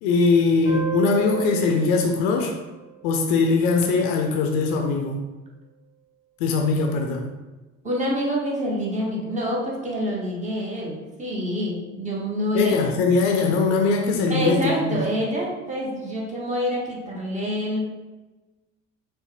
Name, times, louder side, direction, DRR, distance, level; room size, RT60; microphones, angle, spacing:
voice 1, 0.0-2.5 3.0-5.2 6.4-7.3 12.5-15.0, left 4 dB, 55° left, 3 dB, 0.6 m, -21 dB
sound 1, 0.6-3.8, right 9 dB, 65° right, 1.3 m, -34 dB
voice 2, 7.8-12.7 14.3-17.8, equal, 20° right, -3 dB, 1.1 m, -26 dB
4.6 x 2.2 x 3.2 m, 1.2 s
figure-of-eight pair, 60°, 39 cm